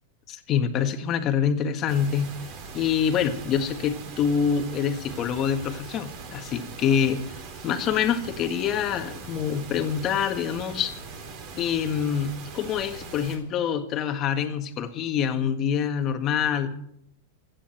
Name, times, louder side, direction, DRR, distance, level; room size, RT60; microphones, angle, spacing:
voice 1, 0.3-2.4 2.7-7.2 7.6-10.9 11.6-16.7, left 8 dB, 30° left, 6 dB, 1.8 m, -26 dB
sound 1, 1.9-13.4, right 4 dB, 40° right, 3.9 m, -41 dB
25.5 x 10.0 x 4.5 m, 0.71 s
supercardioid pair, 145°, 0 cm